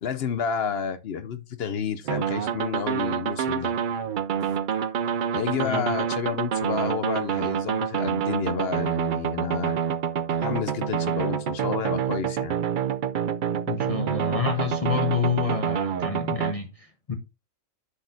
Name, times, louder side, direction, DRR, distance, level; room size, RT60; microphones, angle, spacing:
voice 1, 0.0-3.7 4.4-4.5 5.3-9.8 10.4-12.6, left 7 dB, 60° left, 0.8 m, -30 dB
sound 1, 2.1-16.5, right 8 dB, 60° right, 0.5 m, -27 dB
voice 2, 5.6-5.9 13.7-17.1, left 5 dB, 30° left, 0.9 m, -28 dB
9.9 x 6.2 x 2.6 m
omnidirectional pair, 1.3 m